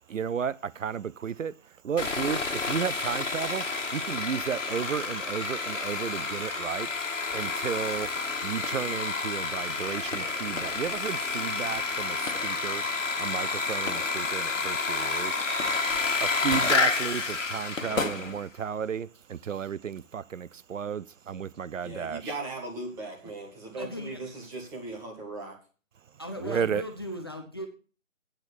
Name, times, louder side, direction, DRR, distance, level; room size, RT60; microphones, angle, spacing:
voice 1, 0.1-1.5 1.8-3.6 3.9-6.9 7.3-8.1 8.4-12.8 13.2-15.4 16.2-22.3 26.4-26.8, right 7 dB, 75° right, 0.6 m, -33 dB
Sawing, 2.0-18.4, left 4 dB, 65° left, 1.9 m, -30 dB
sound 1, 7.9-18.4, left 3 dB, 85° left, 1.4 m, -41 dB
voice 2, 21.8-25.6, right 2 dB, 5° right, 1.0 m, -38 dB
voice 3, 23.8-24.2 26.2-27.7, equal, 20° left, 0.5 m, -37 dB
8.9 x 6.0 x 7.0 m
figure-of-eight pair, 150°, 39 cm